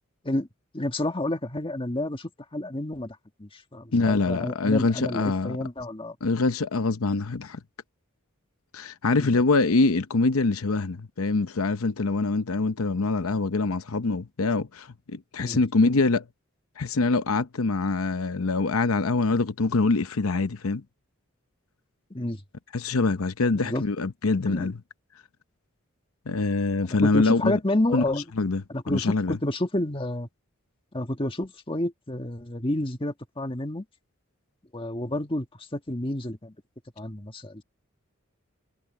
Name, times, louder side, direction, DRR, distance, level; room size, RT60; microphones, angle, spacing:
voice 1, 0.7-6.2 9.2-9.3 15.4-15.6 22.1-22.4 23.5-23.8 24.5-24.7 26.9-28.2 28.7-30.3 30.9-33.8 34.7-35.5 35.7-36.5 37.0-37.6, left 1 dB, 25° left, 1.7 m, -29 dB
voice 2, 3.9-5.6 6.2-7.6 8.7-16.2 16.8-20.8 22.7-24.8 26.3-27.6 27.9-28.0 28.4-29.4, left 3 dB, 85° left, 0.8 m, -24 dB
head